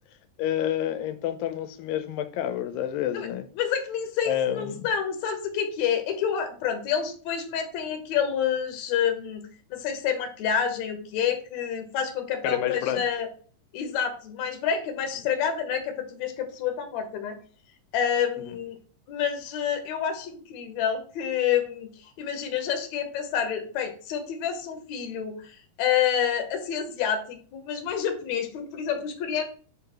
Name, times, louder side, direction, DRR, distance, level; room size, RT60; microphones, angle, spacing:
voice 1, 0.4-3.4 4.2-4.9 12.4-13.0 18.4-18.6, left 11 dB, 90° left, 2.4 m, -29 dB
voice 2, 3.6-9.4 9.7-13.3 13.7-17.4 17.9-18.8 19.1-29.4, left 8 dB, 65° left, 2.0 m, -28 dB
5.0 x 3.9 x 5.6 m
omnidirectional pair, 4.0 m